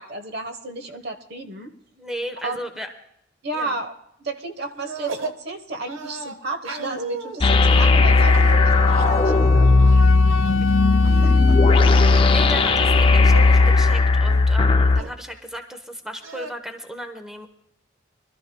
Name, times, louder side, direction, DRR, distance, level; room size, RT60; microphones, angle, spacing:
voice 1, 0.0-1.7 2.4-2.6 3.4-3.9 4.2-9.7 11.2-12.0, right 2 dB, 55° right, 7 dB, 1.1 m, -33 dB
voice 2, 1.9-2.9 3.5-3.7 11.0-17.5, equal, 5° right, 6 dB, 1.0 m, -35 dB
sound 1, 4.7-5.4 5.9-11.1 11.4-12.3 12.9-13.5 13.9-14.0 14.3-15.2 16.2-16.5, right 4 dB, 85° right, 1.0 m, -36 dB
sound 2, 7.4-15.0, left 3 dB, 25° left, 0.4 m, -16 dB
Wind instrument woodwind instrument, 8.0-14.0, left 5 dB, 80° left, 0.7 m, -31 dB
25.5 x 13.0 x 2.3 m, 0.75 s
head